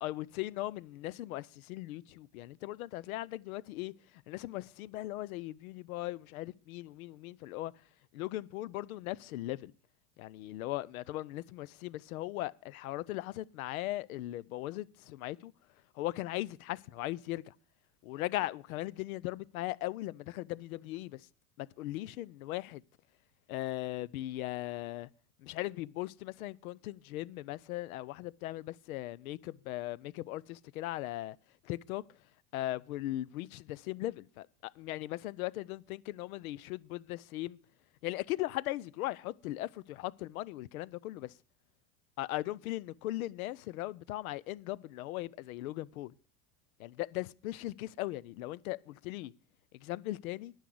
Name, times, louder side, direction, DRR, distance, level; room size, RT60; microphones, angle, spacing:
voice 1, 0.0-7.7 8.1-9.7 10.2-15.5 15.9-17.5 18.0-21.3 21.6-22.8 23.5-25.1 25.4-31.4 31.6-32.0 32.5-37.6 38.0-41.4 42.2-46.1 46.8-49.3 49.7-50.5, left 16 dB, 90° left, 0.6 m, -38 dB
10.0 x 6.4 x 8.5 m
supercardioid pair, 110°, 41 cm